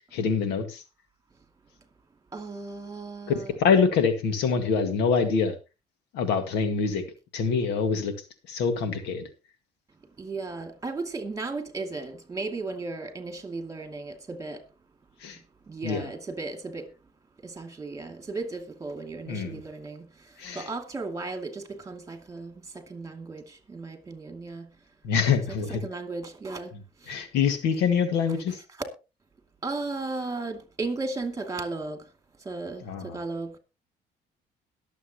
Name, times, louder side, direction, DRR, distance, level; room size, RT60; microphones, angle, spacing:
voice 1, 0.1-0.8 3.3-5.5 6.1-7.0 7.3-8.1 8.5-9.2 15.2-15.4 15.8-16.0 19.3-19.6 20.4-20.6 25.0-25.8 27.1-28.6 32.9-33.2, left 6 dB, 85° left, 1.9 m, -25 dB
voice 2, 2.3-3.9 10.2-14.6 15.7-16.9 17.4-20.1 20.5-22.5 22.9-23.4 23.7-24.7 25.5-26.7 29.6-32.0 32.4-33.6, right 3 dB, 20° right, 2.5 m, -35 dB
21.5 x 7.5 x 3.0 m
cardioid pair, 110°, 17 cm